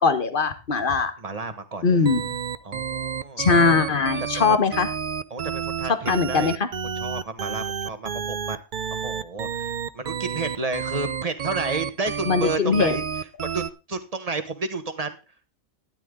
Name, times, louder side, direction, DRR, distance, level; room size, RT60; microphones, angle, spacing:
voice 1, 0.0-1.1 1.8-2.3 3.4-4.9 6.1-6.7 12.2-12.9, left 4 dB, 40° left, 11 dB, 1.5 m, -21 dB
voice 2, 1.2-2.1 2.6-3.8 5.3-6.6 6.9-8.6 8.9-13.0 13.4-13.6 13.9-15.2, right 3 dB, 30° right, 9 dB, 1.4 m, -31 dB
sound 1, 2.0-13.7, right 7 dB, 45° right, 0.7 m, -30 dB
13.0 x 10.5 x 3.8 m, 0.29 s
omnidirectional pair, 1.4 m